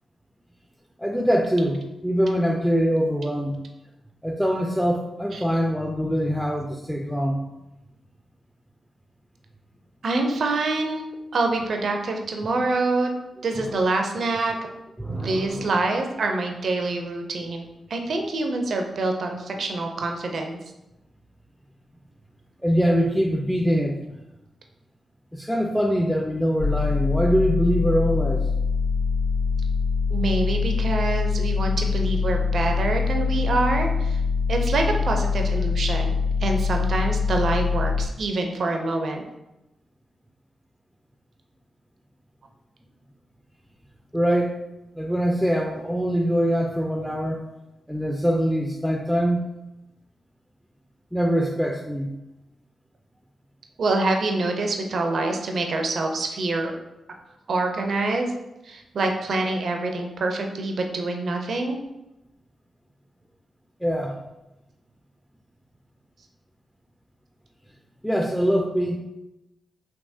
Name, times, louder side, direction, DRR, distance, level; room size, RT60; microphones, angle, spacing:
voice 1, 1.0-3.6 4.2-7.4 13.6-13.8 15.0-15.7 22.6-24.1 25.3-28.5 44.1-44.6 44.9-47.4 47.9-49.4 51.1-52.1 63.8-64.2 68.0-69.0, equal, ahead, 1 dB, 0.4 m, -23 dB
voice 2, 10.0-11.0 11.3-13.1 13.4-14.5 15.1-20.6 30.1-34.2 34.5-36.1 36.4-39.2 53.8-56.7 57.5-58.3 58.6-61.8, right 2 dB, 65° right, 3 dB, 0.4 m, -26 dB
sound 1, 26.6-38.1, left 5 dB, 70° left, 1.4 m, -24 dB
3.5 x 2.8 x 2.6 m, 0.95 s
supercardioid pair, 40°, 0 cm